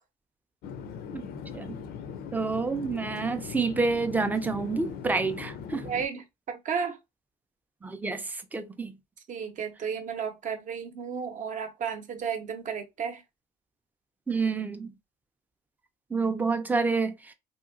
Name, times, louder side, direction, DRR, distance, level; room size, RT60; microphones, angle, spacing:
Chatter / Fixed-wing aircraft airplane, 0.6-6.1, left 7 dB, 65° left, 0.5 m, -40 dB
voice 1, 2.3-5.8 7.8-8.9 14.3-14.9 16.1-17.3, right 4 dB, 10° right, 0.4 m, -28 dB
voice 2, 5.8-7.0 9.3-13.2, right 6 dB, 50° right, 0.7 m, -33 dB
2.8 x 2.7 x 2.5 m
cardioid pair, 110°, 17 cm